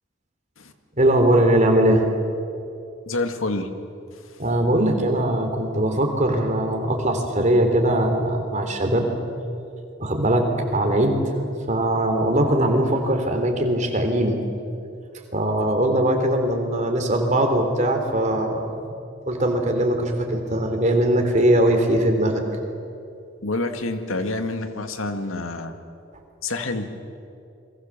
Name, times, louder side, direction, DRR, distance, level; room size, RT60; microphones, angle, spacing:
voice 1, 1.0-2.1 4.4-9.1 10.0-11.2 11.7-14.4 15.3-18.6 19.3-22.4, right 1 dB, 35° right, 4 dB, 3.5 m, -20 dB
voice 2, 3.1-3.7 23.4-25.7 26.4-26.9, left 2 dB, 85° left, 7 dB, 2.1 m, -27 dB
29.5 x 22.5 x 7.4 m, 2.6 s
head